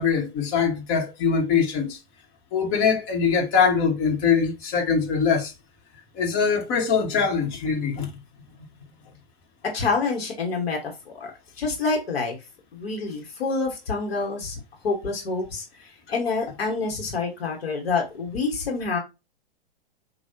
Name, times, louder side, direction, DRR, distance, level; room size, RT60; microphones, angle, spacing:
voice 1, 0.0-2.0 2.5-5.5 6.1-8.1, left 6 dB, 40° left, 1.6 m, -22 dB
voice 2, 9.7-11.3 11.6-12.4 12.7-19.0, left 4 dB, 75° left, 1.5 m, -27 dB
4.5 x 2.7 x 2.8 m
hypercardioid pair, 110°, 31 cm